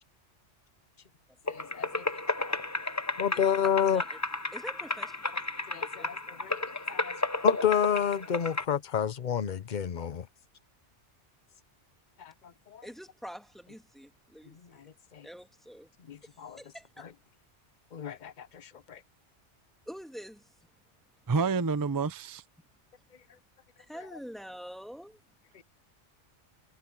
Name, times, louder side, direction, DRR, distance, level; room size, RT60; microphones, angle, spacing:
voice 1, 1.5-2.0 2.4-2.5 3.2-4.0 5.7-7.1 7.4-10.3 12.2-12.3 12.7-12.9 14.8-15.3 16.1-16.6 17.9-19.0 25.5-25.6, left 8 dB, 45° left, 0.9 m, -30 dB
sound 1, 1.5-8.6, left 2 dB, 15° left, 0.8 m, -32 dB
voice 2, 3.3-4.2 4.5-5.4 5.7-6.1 6.4-6.5 12.8-14.8 15.2-15.9 16.2-17.1 19.9-20.5 23.9-25.2, equal, ahead, 2.1 m, -46 dB
voice 3, 21.3-22.4, right 4 dB, 25° right, 0.5 m, -28 dB
omnidirectional pair, 1.2 m